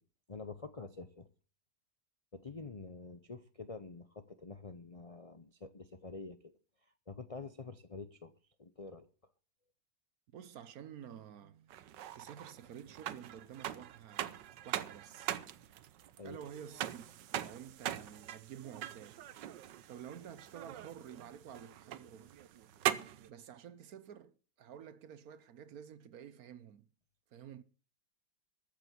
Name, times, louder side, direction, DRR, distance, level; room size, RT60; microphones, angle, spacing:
voice 1, 0.3-1.3 2.3-6.5 7.1-8.3 8.6-9.1 16.2-16.4, left 3 dB, 50° left, 0.4 m, -47 dB
voice 2, 10.3-11.7 12.1-14.3 14.6-15.3 16.2-19.2 19.9-22.4 23.0-26.9 27.3-27.6, right 9 dB, 65° right, 1.2 m, -51 dB
sound 1, 11.7-23.3, right 11 dB, 85° right, 1.4 m, -42 dB
13.5 x 7.0 x 7.9 m
omnidirectional pair, 1.9 m